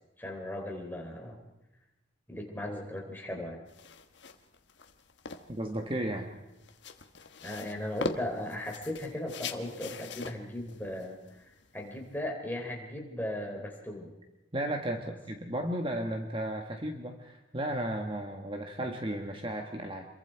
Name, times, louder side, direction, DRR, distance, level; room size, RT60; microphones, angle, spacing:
voice 1, 0.2-1.4 2.3-3.6 7.4-14.1, left 1 dB, 10° left, 1 dB, 3.5 m, -37 dB
sound 1, 3.7-12.2, left 3 dB, 60° left, 1.4 m, -43 dB
voice 2, 5.5-6.3 14.5-20.1, right 1 dB, 25° right, 3 dB, 1.4 m, -34 dB
27.5 x 23.0 x 4.6 m, 0.99 s
head